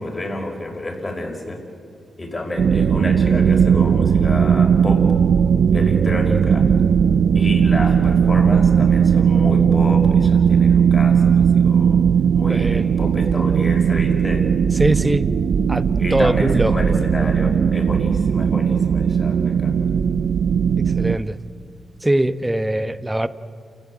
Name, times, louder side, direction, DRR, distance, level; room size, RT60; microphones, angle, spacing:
voice 1, 0.0-1.6 2.2-5.1 5.7-6.7 7.3-12.0 12.3-14.5 16.0-19.9, left 1 dB, 30° left, 5.7 m, -29 dB
sound 1, 2.6-21.2, right 7 dB, 75° right, 0.7 m, -17 dB
voice 2, 12.5-12.9 14.7-15.3 15.7-15.8 16.1-16.7 20.9-21.4 22.0-23.3, right 1 dB, 15° right, 1.0 m, -21 dB
29.0 x 15.0 x 8.8 m
cardioid pair, 50°, 0 cm